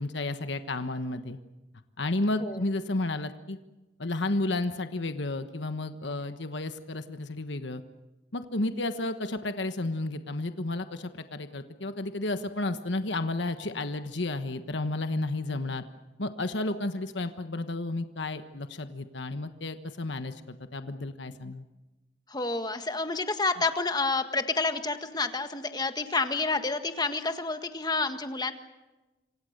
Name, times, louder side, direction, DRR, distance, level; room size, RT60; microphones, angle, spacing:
voice 1, 0.0-1.4 2.0-3.6 4.0-7.8 8.3-15.8 16.2-21.6, left 2 dB, 70° left, 9 dB, 1.3 m, -32 dB
voice 2, 22.3-28.5, left 3 dB, 20° left, 8 dB, 1.6 m, -29 dB
27.0 x 26.0 x 6.7 m, 1.1 s
head